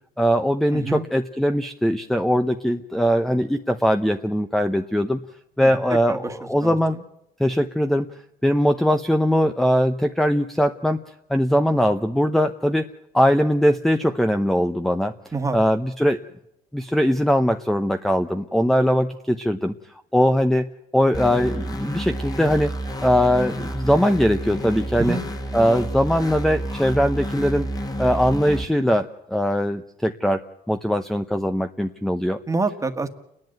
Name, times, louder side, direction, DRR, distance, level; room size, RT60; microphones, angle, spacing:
voice 1, 0.2-5.2 5.6-7.0 7.4-8.1 8.4-11.0 11.3-12.9 13.1-15.1 15.5-16.2 16.7-19.7 20.1-20.7 20.9-22.7 23.0-25.2 25.5-27.7 28.0-30.4 30.7-32.4, equal, ahead, 7 dB, 0.8 m, -21 dB
voice 2, 0.7-1.0 5.6-5.8 6.1-6.3 6.6-7.0 15.3-15.6 25.0-25.2 32.5-33.1, right 3 dB, 20° right, 7 dB, 1.8 m, -27 dB
sound 1, 21.1-28.6, right 1 dB, 20° left, 1.8 m, -30 dB
30.0 x 11.0 x 9.1 m, 0.81 s
cardioid pair, 110°, 17 cm